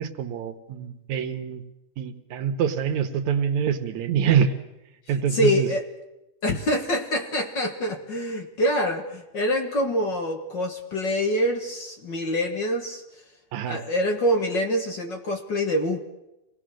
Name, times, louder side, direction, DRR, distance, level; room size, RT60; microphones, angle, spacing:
voice 1, 0.0-1.6 2.0-4.6 5.1-5.7 13.5-13.8, right 7 dB, 80° right, 8 dB, 2.6 m, -25 dB
voice 2, 5.3-5.8 6.4-13.0 13.7-16.0, equal, 45° left, 4 dB, 1.8 m, -25 dB
26.5 x 18.5 x 6.4 m, 0.96 s
omnidirectional pair, 3.3 m